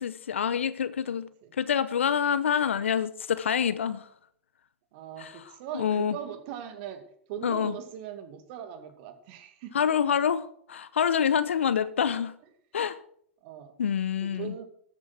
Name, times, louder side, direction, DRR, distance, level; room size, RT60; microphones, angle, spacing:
voice 1, 0.0-1.3 1.6-4.1 5.2-5.3 5.7-6.2 7.4-7.8 9.7-12.3 12.7-13.0 13.8-14.5, left 8 dB, 75° left, 0.8 m, -26 dB
voice 2, 4.9-7.0 7.3-9.7 11.6-11.7 13.4-13.7 14.2-14.7, right 9 dB, 50° right, 2.3 m, -40 dB
13.5 x 8.4 x 6.0 m
figure-of-eight pair, 95°, 7 cm